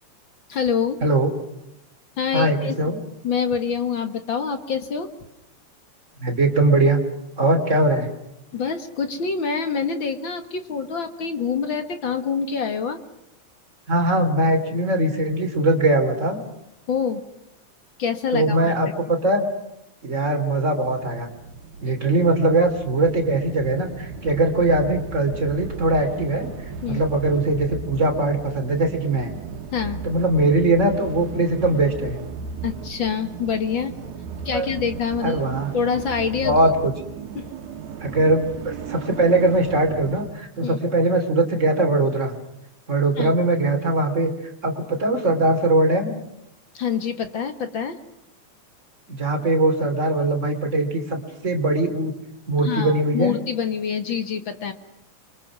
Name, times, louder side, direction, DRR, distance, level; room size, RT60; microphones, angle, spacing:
voice 1, 0.5-1.0 2.2-2.8 3.2-5.1 8.5-13.0 16.9-17.3 18.0-18.9 26.8-27.0 29.7-30.0 32.6-33.9 34.5-35.4 35.7-36.6 37.4-37.5 40.6-40.8 43.2-43.4 46.7-48.0 52.6-54.7, left 6 dB, 50° left, 8 dB, 1.8 m, -26 dB
voice 2, 2.3-3.0 6.2-7.0 7.4-8.1 13.9-16.4 18.3-19.5 20.0-21.3 21.8-26.5 26.9-29.3 30.0-32.2 34.5-34.7 35.2-35.7 36.4-36.9 38.0-42.3 42.9-44.3 44.6-46.1 49.1-52.1 52.5-53.4, right 2 dB, 25° right, 3 dB, 3.4 m, -21 dB
sound 1, 20.8-40.3, right 5 dB, 85° right, 3.1 m, -35 dB
28.5 x 24.5 x 6.1 m, 0.86 s
omnidirectional pair, 3.4 m